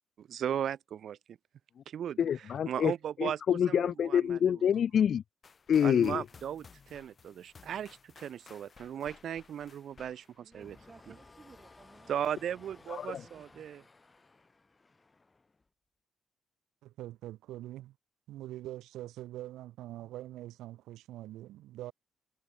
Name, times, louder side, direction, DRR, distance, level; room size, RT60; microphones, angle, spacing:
voice 1, 0.2-1.4 1.9-2.2 2.7-4.6 5.8-10.8 12.1-13.8, right 9 dB, 65° right, 2.7 m, -37 dB
voice 2, 2.2-2.9 3.2-5.2 5.7-6.2 12.9-13.2, left 8 dB, 60° left, 0.3 m, -27 dB
sound 1, 5.4-11.3, left 5 dB, 40° left, 6.9 m, -57 dB
voice 3, 10.4-13.9, right 4 dB, 30° right, 6.5 m, -59 dB
sound 2, 10.5-15.7, left 3 dB, 25° left, 6.6 m, -58 dB
voice 4, 16.8-17.9 18.3-21.9, right 15 dB, 90° right, 3.9 m, -44 dB
cardioid pair, 90°, 0 cm